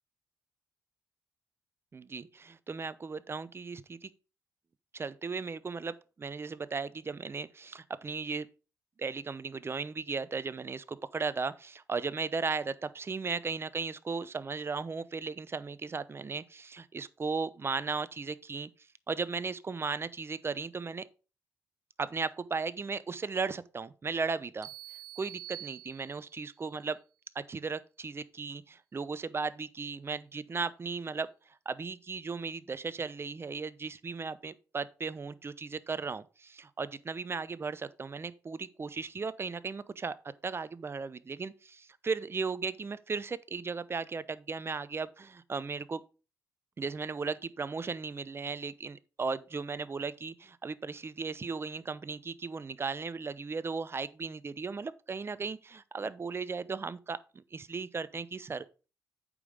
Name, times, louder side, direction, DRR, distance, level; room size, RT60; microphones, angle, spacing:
voice 1, 1.9-4.1 4.9-8.5 9.0-18.7 19.1-21.1 22.0-24.7 25.2-27.0 27.3-31.3 31.7-40.2 40.4-46.0 46.8-58.7, right 4 dB, 35° right, 0.8 m, -36 dB
sound 1, 24.6-26.5, right 14 dB, 70° right, 0.7 m, -46 dB
8.4 x 5.4 x 4.9 m
supercardioid pair, 55°, 7 cm